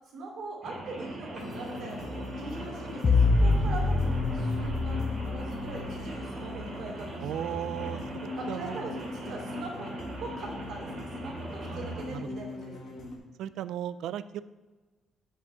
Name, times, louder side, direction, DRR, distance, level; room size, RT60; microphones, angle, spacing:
voice 1, 0.1-7.4 8.4-13.1, right 3 dB, 55° right, -2 dB, 2.9 m, -41 dB
Rain, 0.6-12.1, right 1 dB, 25° right, 2.8 m, -41 dB
sound 1, 1.3-13.2, left 2 dB, 45° left, 2.0 m, -41 dB
sound 2, 3.0-6.1, left 3 dB, 25° left, 0.6 m, -25 dB
voice 2, 7.2-8.8 11.7-12.2 13.4-14.4, right 11 dB, 70° right, 14 dB, 0.3 m, -36 dB
7.8 x 6.2 x 6.7 m, 1.3 s
cardioid pair, 175°, 0 cm